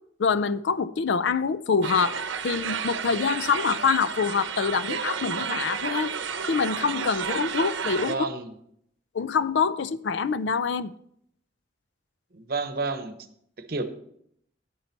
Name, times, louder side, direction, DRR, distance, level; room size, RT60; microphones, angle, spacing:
voice 1, 0.2-2.2 2.4-6.1 6.5-8.1 9.1-10.9, left 5 dB, 70° left, 0.4 m, -25 dB
sound 1, 1.8-8.1, right 6 dB, 85° right, 0.8 m, -31 dB
voice 2, 8.1-8.5 12.3-13.2 13.6-13.8, right 3 dB, 55° right, 0.9 m, -30 dB
10.0 x 8.8 x 4.0 m
head